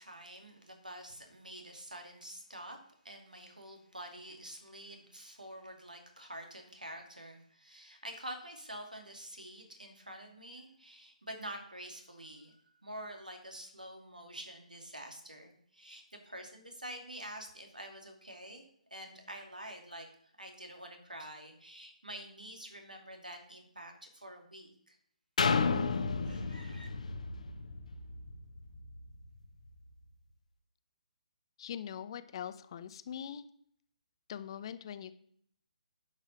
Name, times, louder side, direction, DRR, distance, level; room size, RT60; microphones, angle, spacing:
voice 1, 0.0-2.8 3.0-25.0 26.2-26.9, right 1 dB, 85° right, 4 dB, 2.6 m, -47 dB
sound 1, 25.4-29.2 29.7-29.8, left 4 dB, 60° left, 1.0 m, -33 dB
voice 2, 31.6-33.5 34.3-35.1, left 9 dB, 40° left, 13 dB, 0.7 m, -42 dB
10.0 x 5.8 x 5.9 m, 0.66 s
figure-of-eight pair, 140°, 4 cm